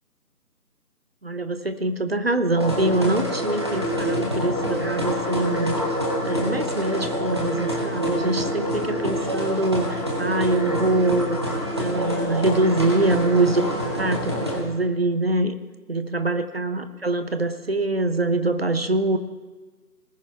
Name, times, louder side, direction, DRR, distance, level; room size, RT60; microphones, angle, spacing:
voice 1, 1.2-5.8 6.2-15.5 15.9-19.2, right 2 dB, 40° right, 10 dB, 0.8 m, -24 dB
sound 1, 2.5-14.6, equal, 15° right, 1.1 m, -26 dB
19.5 x 9.7 x 3.4 m, 1.3 s
figure-of-eight pair, 160°, 47 cm